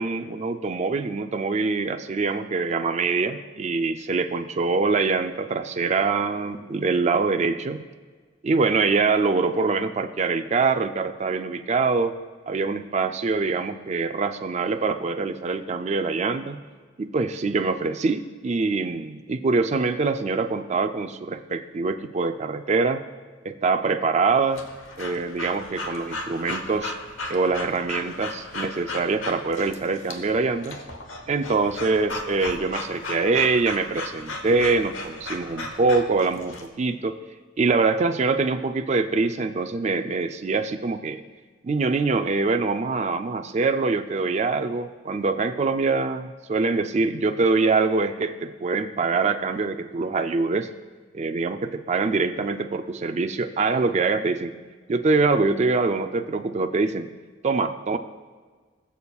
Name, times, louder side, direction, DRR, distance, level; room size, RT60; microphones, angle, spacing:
voice 1, 0.0-7.8 8.4-12.1 12.5-16.6 17.0-23.0 23.4-24.6 25.0-27.0 27.3-30.8 31.3-37.2 37.6-41.2 41.6-50.7 51.1-54.5 54.9-57.1 57.4-58.0, right 4 dB, 35° right, 8 dB, 0.4 m, -24 dB
Breathing / Dog, 24.5-36.7, left 2 dB, 85° left, 1.0 m, -36 dB
20.0 x 7.0 x 2.4 m, 1.5 s
head